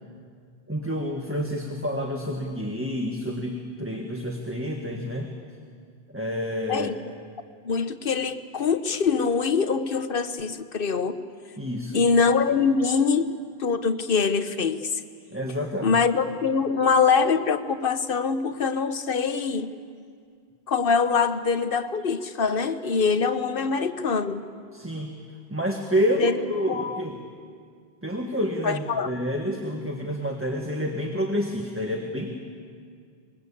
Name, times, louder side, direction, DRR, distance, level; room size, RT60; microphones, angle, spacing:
voice 1, 0.7-5.3 6.1-6.9 11.6-12.0 15.3-16.0 24.7-25.1 25.5-27.2 28.0-32.4, equal, 10° right, 1 dB, 1.7 m, -28 dB
voice 2, 7.6-11.2 11.9-13.2 13.6-14.8 15.8-19.7 20.7-24.4 26.2-26.4 26.7-27.0 28.6-29.1, left 5 dB, 60° left, 10 dB, 1.2 m, -23 dB
25.0 x 22.0 x 8.5 m, 2.2 s
omnidirectional pair, 1.1 m